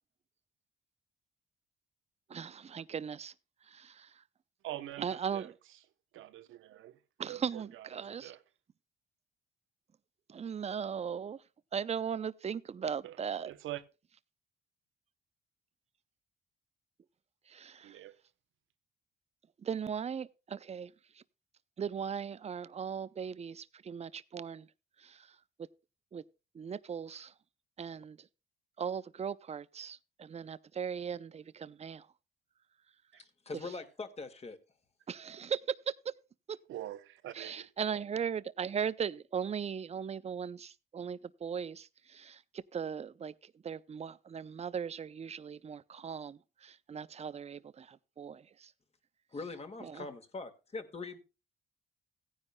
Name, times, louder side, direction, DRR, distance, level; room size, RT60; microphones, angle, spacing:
voice 1, 2.3-3.3 3.7-4.1 5.0-5.5 7.2-8.3 10.3-11.4 11.7-13.5 17.5-18.0 19.6-21.2 21.8-24.7 25.0-25.4 26.1-26.2 26.5-27.3 27.8-28.3 28.8-32.1 35.1-36.1 36.5-36.6 37.3-48.7 49.8-50.1, right 7 dB, 35° right, 0.6 m, -38 dB
voice 2, 4.6-5.5 6.1-8.4 13.0-13.8 17.8-18.2 33.1-33.2 36.7-37.7, right 14 dB, 85° right, 1.0 m, -45 dB
voice 3, 33.5-34.6 49.3-51.2, left 3 dB, 30° left, 2.1 m, -42 dB
16.5 x 9.9 x 2.3 m
cardioid pair, 90°, 20 cm